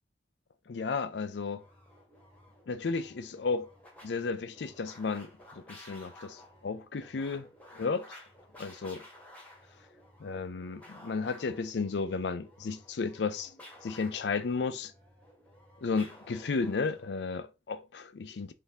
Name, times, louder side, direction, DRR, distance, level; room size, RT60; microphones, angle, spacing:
voice 1, 0.7-1.6 2.7-3.7 4.0-5.3 5.7-7.5 7.7-8.2 8.6-9.0 10.2-13.5 13.8-14.9 15.8-18.5, left 4 dB, 75° left, 0.5 m, -33 dB
sound 1, 1.5-17.2, left 1 dB, 10° left, 1.3 m, -54 dB
4.2 x 2.7 x 3.4 m
head